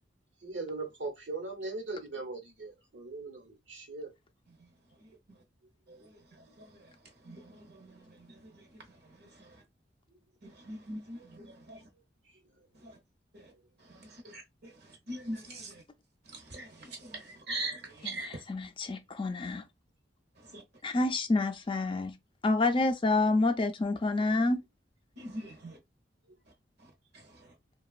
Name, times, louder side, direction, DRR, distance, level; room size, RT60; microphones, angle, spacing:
voice 1, 0.4-4.1, right 3 dB, 80° right, 1.1 m, -39 dB
voice 2, 7.2-7.9 8.2-8.3 10.4-11.8 12.8-12.9 13.3-13.5 14.0-14.7 15.1-15.8 16.3-18.4 20.5-20.6 25.2-25.8, right 2 dB, 60° right, 0.9 m, -41 dB
voice 3, 18.0-19.6 20.8-22.2 22.4-24.6, left 2 dB, 30° left, 0.4 m, -28 dB
2.9 x 2.3 x 2.4 m
head